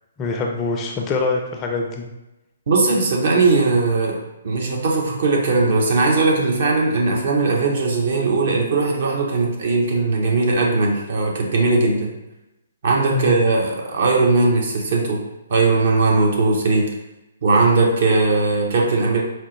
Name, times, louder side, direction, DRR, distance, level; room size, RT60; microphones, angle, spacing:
voice 1, 0.2-2.1 13.1-13.4, left 3 dB, 20° left, 1 dB, 0.4 m, -24 dB
voice 2, 2.7-4.2 4.4-12.1 12.8-15.2 15.5-16.9 17.4-19.2, right 3 dB, 55° right, -1 dB, 0.8 m, -19 dB
4.4 x 2.0 x 3.1 m, 0.97 s
figure-of-eight pair, 130°, 0 cm